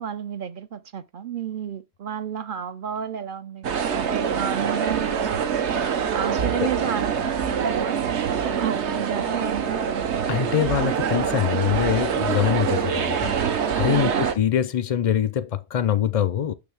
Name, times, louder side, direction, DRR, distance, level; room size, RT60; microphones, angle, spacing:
voice 1, 0.0-5.5 6.1-10.1 13.9-14.3, right 8 dB, 60° right, 0.6 m, -31 dB
sound 1, 3.6-14.4, right 7 dB, 80° right, 1.2 m, -25 dB
voice 2, 10.3-16.5, left 9 dB, 60° left, 0.4 m, -24 dB
6.8 x 6.2 x 3.3 m
omnidirectional pair, 1.1 m